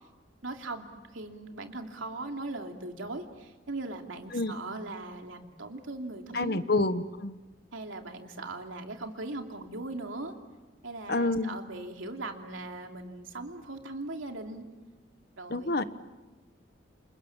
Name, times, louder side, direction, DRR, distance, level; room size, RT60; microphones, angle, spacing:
voice 1, 0.4-6.6 7.7-10.3 10.8-14.7 15.4-15.8, right 2 dB, 85° right, 3 dB, 2.9 m, -39 dB
voice 2, 6.3-7.4 11.1-11.6 15.5-15.8, left 2 dB, 50° left, 12 dB, 1.1 m, -28 dB
29.5 x 27.5 x 7.3 m, 1.2 s
head